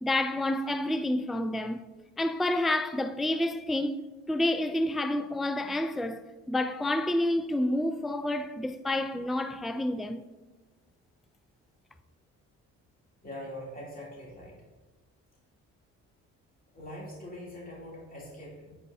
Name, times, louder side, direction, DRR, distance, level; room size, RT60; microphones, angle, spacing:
voice 1, 0.0-1.8 2.2-4.0 4.3-10.2, left 1 dB, ahead, 0.4 m, -29 dB
voice 2, 13.2-14.6 16.7-18.8, left 1 dB, 30° left, 3.0 m, -43 dB
9.6 x 8.7 x 2.7 m
cardioid pair, 90°, 30 cm